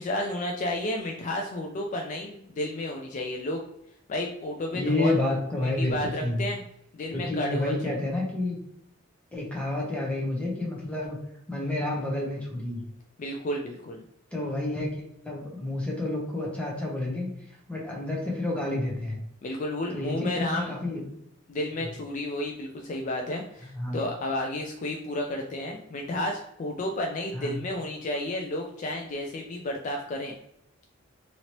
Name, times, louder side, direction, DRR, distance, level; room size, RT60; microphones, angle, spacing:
voice 1, 0.0-3.6 4.1-5.1 5.6-6.6 6.9-8.0 13.2-14.0 19.4-20.7 21.5-30.4, left 1 dB, 35° left, 2 dB, 0.3 m, -32 dB
voice 2, 4.7-6.5 7.1-8.6 9.3-11.2 11.5-12.8 14.3-14.9 15.2-17.3 17.7-19.2 19.9-21.0 23.8-24.0 27.3-27.6, left 2 dB, 5° left, -2 dB, 0.7 m, -29 dB
2.9 x 2.8 x 2.9 m, 0.78 s
head